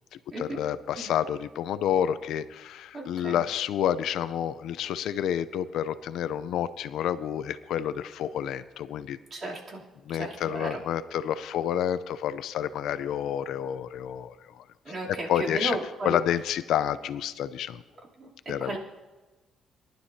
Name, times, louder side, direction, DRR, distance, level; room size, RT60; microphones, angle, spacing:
voice 1, 0.4-9.2 10.1-14.6 15.1-15.8 16.0-17.8 18.5-18.8, left 10 dB, 80° left, 13 dB, 0.5 m, -29 dB
voice 2, 2.9-3.4 9.3-9.8 10.1-10.8 14.8-16.2 18.2-18.8, right 1 dB, 40° right, -3 dB, 3.1 m, -34 dB
22.0 x 11.5 x 2.8 m, 1.2 s
cardioid pair, 90°, 0 cm